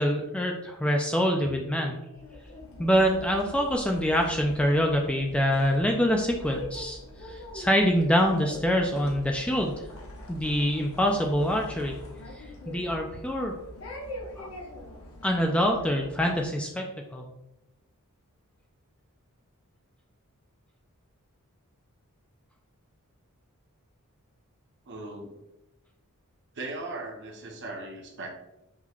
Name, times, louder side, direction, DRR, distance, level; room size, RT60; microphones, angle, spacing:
voice 1, 0.0-2.0 2.8-9.9 10.3-12.0 12.3-13.6 14.4-14.5 15.2-16.8 17.1-17.3, equal, 5° left, 1 dB, 0.3 m, -25 dB
sound 1, 2.1-16.5, left 1 dB, 65° left, 1.0 m, -43 dB
voice 2, 24.9-25.4 26.5-28.3, right 2 dB, 50° right, 1 dB, 0.8 m, -38 dB
5.5 x 3.1 x 2.4 m, 0.90 s
head